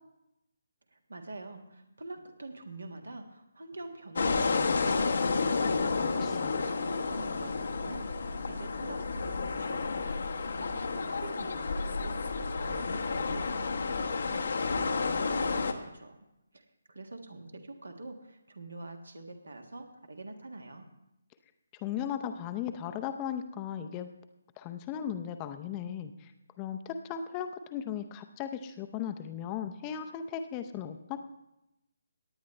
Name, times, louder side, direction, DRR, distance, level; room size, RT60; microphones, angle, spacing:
voice 1, 0.9-5.7 5.9-10.3 10.5-16.3 16.5-20.9, right 2 dB, 75° right, 5 dB, 1.7 m, -45 dB
sound 1, 4.2-15.7, left 4 dB, 60° left, 1.0 m, -31 dB
voice 2, 6.0-6.5 21.8-24.1 24.6-26.3 26.6-31.2, left 9 dB, 20° left, 8 dB, 0.7 m, -37 dB
18.0 x 9.5 x 3.3 m, 0.88 s
figure-of-eight pair, 145°, 0 cm